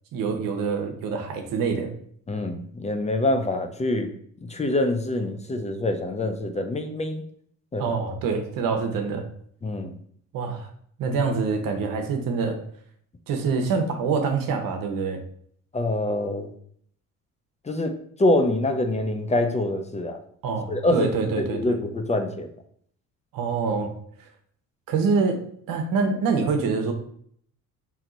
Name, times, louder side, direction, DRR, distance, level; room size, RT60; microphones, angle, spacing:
voice 1, 0.1-1.9 7.8-9.2 10.3-10.7 11.0-12.6 13.3-15.2 20.4-21.8 23.3-23.9 24.9-25.4 25.7-26.9, right 5 dB, 75° right, 5 dB, 1.0 m, -25 dB
voice 2, 2.3-4.1 4.5-7.2 7.7-7.9 9.6-9.9 15.7-16.5 17.6-17.9 18.2-20.2 20.7-21.1 21.4-22.5, left 1 dB, 20° left, 6 dB, 0.6 m, -25 dB
4.5 x 2.8 x 3.9 m, 0.63 s
cardioid pair, 90°, 35 cm